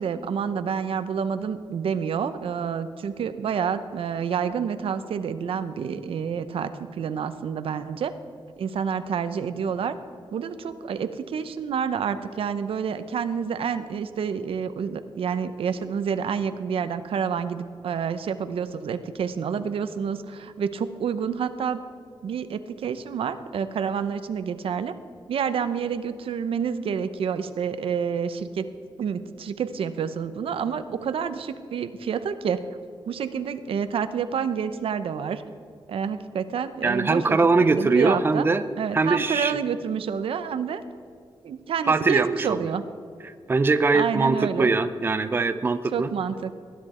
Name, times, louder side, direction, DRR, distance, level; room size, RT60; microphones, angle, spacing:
voice 1, 0.0-8.1 8.6-10.0 10.3-21.8 22.2-24.9 25.3-28.6 29.0-32.6 33.1-35.4 35.9-38.5 38.8-40.8 41.4-42.8 43.9-44.7 45.9-46.5, right 7 dB, 85° right, 11 dB, 0.7 m, -28 dB
voice 2, 36.8-38.6 38.9-39.6 41.9-42.6 43.2-46.1, right 3 dB, 25° right, 11 dB, 0.5 m, -22 dB
19.5 x 10.5 x 4.3 m, 2.3 s
wide cardioid pair, 150°, 9 cm